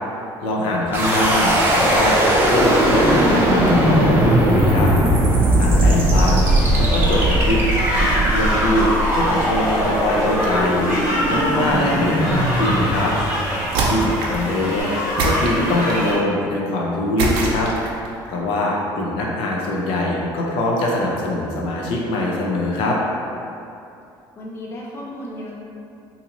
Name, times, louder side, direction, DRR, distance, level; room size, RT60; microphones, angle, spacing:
voice 1, 0.4-4.9 5.6-7.6 7.9-8.9 9.1-10.8 11.3-13.1 13.9-14.9 15.2-17.7 18.3-23.0, left 1 dB, 75° left, -3 dB, 0.6 m, -22 dB
sound 1, 0.9-13.9, right 1 dB, 25° right, 0.5 m, -18 dB
voice 2, 5.9-6.3 14.1-14.7 24.4-25.5, left 1 dB, 30° left, -3 dB, 0.5 m, -35 dB
sound 2, 6.4-16.1, equal, 55° left, 1.5 m, -25 dB
sound 3, 13.7-14.5 15.2-16.1 17.2-18.1, right 2 dB, 85° right, 0.6 m, -23 dB
3.9 x 2.6 x 2.9 m, 2.6 s
cardioid pair, 150°, 9 cm